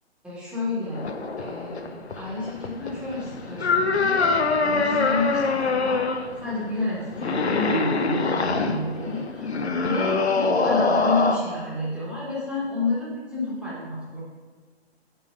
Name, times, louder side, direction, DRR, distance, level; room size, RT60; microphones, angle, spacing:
voice 1, 0.2-1.1 1.4-6.0 6.4-9.5 9.8-14.2, left 2 dB, 5° right, -8 dB, 1.3 m, -30 dB
sound 1, 0.9-11.4, left 4 dB, 75° left, 0.7 m, -25 dB
5.7 x 3.8 x 4.8 m, 1.4 s
figure-of-eight pair, 125°, 33 cm